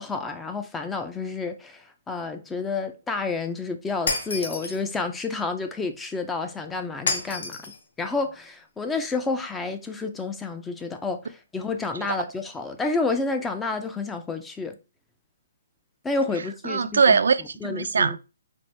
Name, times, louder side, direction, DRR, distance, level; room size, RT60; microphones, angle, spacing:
voice 1, 0.0-7.6 8.0-14.8 16.0-17.2 17.6-18.2, left 3 dB, 5° left, 0.4 m, -30 dB
Shatter, 4.1-4.8 7.1-7.8, left 3 dB, 65° left, 1.4 m, -29 dB
voice 2, 16.6-18.2, right 5 dB, 75° right, 0.4 m, -21 dB
4.3 x 2.6 x 3.2 m
hypercardioid pair, 165°, 0 cm